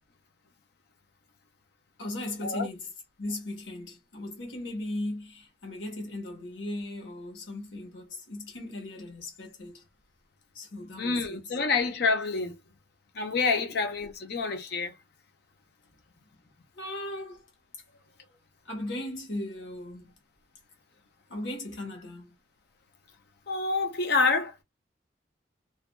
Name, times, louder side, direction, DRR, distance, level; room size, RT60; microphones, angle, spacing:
voice 1, 2.0-2.9 3.2-9.8 10.5-11.5 13.5-13.8 16.7-17.4 18.6-20.1 21.3-22.4, left 1 dB, 80° left, 1.3 m, -37 dB
voice 2, 11.0-12.6 13.2-14.9 23.5-24.5, left 4 dB, 60° left, 0.7 m, -27 dB
2.6 x 2.2 x 2.2 m
head